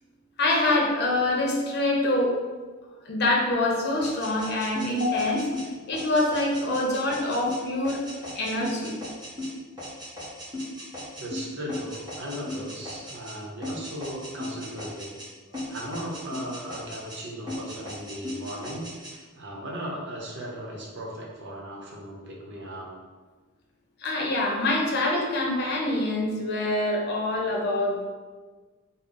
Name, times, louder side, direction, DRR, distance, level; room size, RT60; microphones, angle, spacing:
voice 1, 0.4-2.3 3.1-8.0 8.3-9.0 24.0-28.1, left 2 dB, 55° left, -1 dB, 0.7 m, -25 dB
sound 1, 4.0-13.4 13.6-15.3 15.5-17.2 17.5-19.1, left 1 dB, 20° right, 1.1 m, -37 dB
voice 2, 11.2-15.1 15.7-22.9, right 1 dB, 60° right, -2 dB, 0.8 m, -37 dB
3.8 x 2.1 x 3.8 m, 1.4 s
head